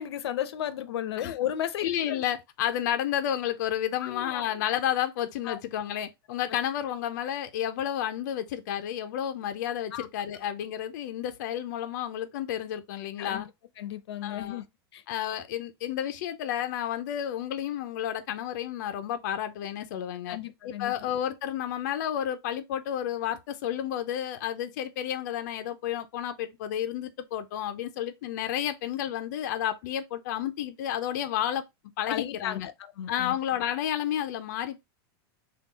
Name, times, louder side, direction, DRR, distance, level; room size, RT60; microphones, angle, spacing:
voice 1, 0.0-2.2 4.0-4.4 5.5-5.6 9.9-10.1 13.2-13.4 13.8-14.7 14.9-15.0 20.3-20.9 32.1-33.3, left 11 dB, 90° left, 0.6 m, -34 dB
voice 2, 1.8-13.5 14.2-14.6 15.1-20.4 20.6-31.6 32.0-32.7 33.1-34.8, left 10 dB, 45° left, 0.4 m, -31 dB
3.7 x 2.3 x 4.0 m
supercardioid pair, 180°, 13 cm